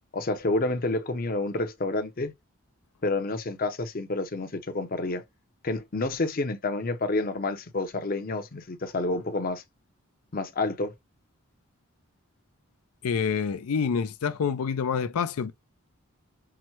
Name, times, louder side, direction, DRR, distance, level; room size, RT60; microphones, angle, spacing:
voice 1, 0.1-2.3 3.0-5.2 5.6-9.6 10.3-10.9, left 2 dB, 40° left, 0.6 m, -29 dB
voice 2, 13.0-15.5, left 6 dB, 85° left, 0.4 m, -27 dB
5.7 x 2.1 x 3.0 m
head